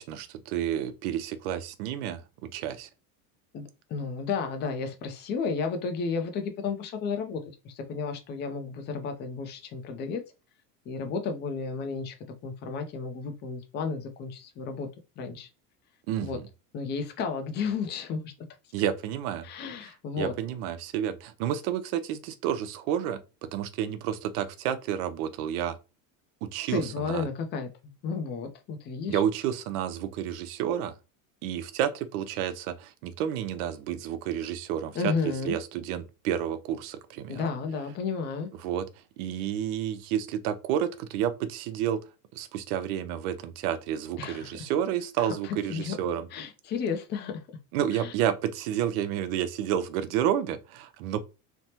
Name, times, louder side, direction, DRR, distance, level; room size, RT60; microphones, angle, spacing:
voice 1, 0.0-2.9 16.1-16.4 18.7-19.5 19.8-19.9 20.2-23.2 23.5-25.8 26.4-27.3 29.1-30.9 31.4-37.5 38.6-38.9 39.2-42.0 42.3-46.3 47.7-51.2, right 10 dB, 70° right, 0.6 m, -30 dB
voice 2, 3.9-10.2 10.9-12.1 12.4-14.9 15.2-15.5 16.2-16.4 16.7-18.3 19.4-20.3 26.7-27.7 28.0-29.2 34.9-35.6 37.3-38.5 44.2-44.5 45.2-46.0 46.3-47.3 47.9-48.1, left 5 dB, 25° left, 0.4 m, -32 dB
3.3 x 2.0 x 2.7 m
supercardioid pair, 145°, 45 cm